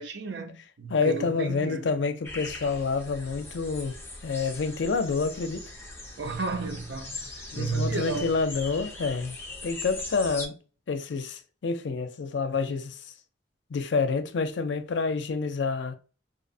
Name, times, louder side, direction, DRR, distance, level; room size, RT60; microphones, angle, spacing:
voice 1, 0.0-1.8 6.2-8.3, right 3 dB, 75° right, 0.6 m, -33 dB
voice 2, 0.9-4.0 4.2-5.7 7.5-9.4 9.6-10.5 10.9-13.1 13.7-15.9, left 4 dB, 80° left, 0.4 m, -28 dB
sound 1, 2.2-10.5, left 2 dB, 15° left, 0.5 m, -40 dB
2.7 x 2.0 x 2.6 m
head